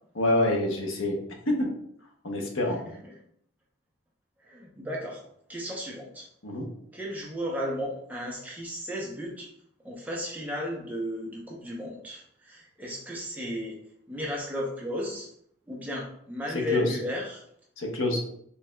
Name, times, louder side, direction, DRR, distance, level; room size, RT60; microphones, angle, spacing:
voice 1, 0.1-1.2 1.5-1.7 2.2-2.8 6.4-6.7 16.7-16.9 17.8-18.2, left 1 dB, 85° left, 1 dB, 0.9 m, -26 dB
voice 2, 4.4-5.2 5.5-6.2 6.9-9.5 9.8-13.8 14.1-15.3 15.7-17.4, equal, 10° right, -3 dB, 0.7 m, -34 dB
4.6 x 3.3 x 2.3 m, 0.69 s
head